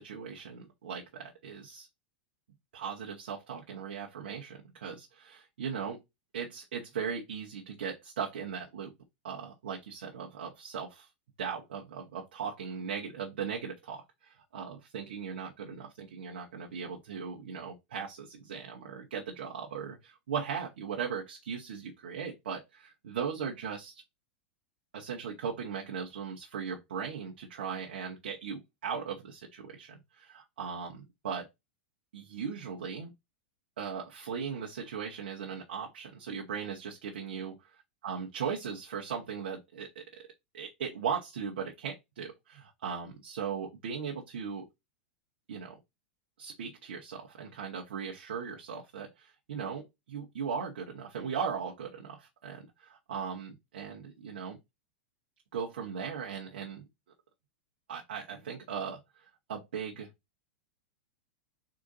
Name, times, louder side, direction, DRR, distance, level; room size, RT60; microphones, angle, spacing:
voice 1, 0.0-1.9 2.7-6.0 6.3-8.9 9.2-11.1 11.4-24.0 24.9-31.5 32.1-33.1 33.8-37.5 38.0-40.3 40.5-44.7 45.5-45.8 46.4-54.6 55.5-56.9 57.9-60.1, right 6 dB, 65° right, 0.9 m, -38 dB
3.8 x 2.4 x 3.9 m
figure-of-eight pair, 95°, 6 cm